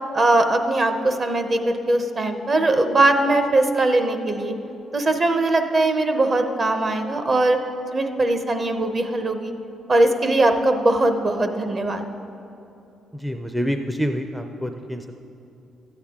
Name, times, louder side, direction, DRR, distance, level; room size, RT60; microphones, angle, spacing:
voice 1, 0.1-4.5 4.9-7.6 7.9-9.5 9.9-12.0, right 2 dB, 40° right, 7 dB, 0.8 m, -20 dB
voice 2, 13.1-15.2, equal, 5° right, 5 dB, 0.4 m, -27 dB
13.0 x 8.6 x 3.6 m, 2.8 s
cardioid pair, 90°, 0 cm